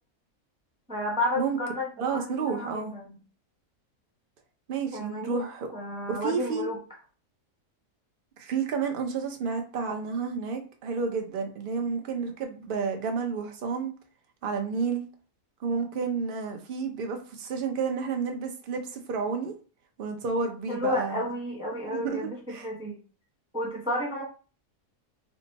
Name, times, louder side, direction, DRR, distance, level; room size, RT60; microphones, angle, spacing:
voice 1, 0.9-3.2 4.9-5.4 5.7-6.8 20.7-23.0 23.5-24.2, left 1 dB, 5° right, 0.8 m, -32 dB
voice 2, 2.0-3.0 4.7-5.7 6.1-6.7 8.4-13.9 14.4-15.0 15.6-19.5 20.0-21.3 21.9-22.7, right 5 dB, 50° right, 0.7 m, -30 dB
3.5 x 2.0 x 3.9 m
omnidirectional pair, 1.5 m